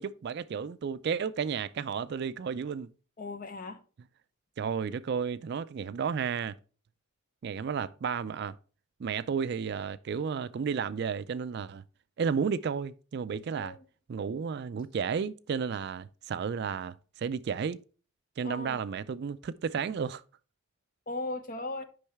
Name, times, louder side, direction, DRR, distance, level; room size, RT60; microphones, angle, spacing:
voice 1, 0.0-2.9 4.6-6.6 7.4-8.5 9.0-11.8 12.2-13.7 14.1-17.8 18.4-20.2, right 6 dB, 50° right, 0.3 m, -32 dB
voice 2, 3.2-3.8 13.5-13.8 18.4-18.8 21.1-21.8, left 2 dB, 40° left, 0.8 m, -37 dB
8.6 x 5.5 x 3.4 m
head